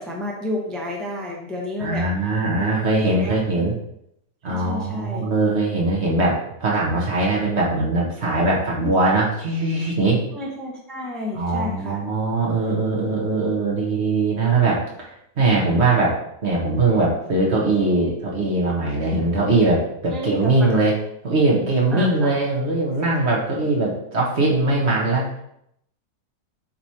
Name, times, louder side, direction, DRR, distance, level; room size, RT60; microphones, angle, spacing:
voice 1, 0.0-3.4 4.4-5.3 10.3-12.0 19.1-19.3 20.1-20.8 21.9-22.4, left 1 dB, ahead, -2 dB, 0.6 m, -31 dB
voice 2, 1.8-3.7 4.4-10.2 11.3-15.1 15.4-20.9 21.2-25.3, right 2 dB, 40° right, -3 dB, 1.4 m, -21 dB
7.3 x 3.2 x 4.3 m, 0.76 s
omnidirectional pair, 1.9 m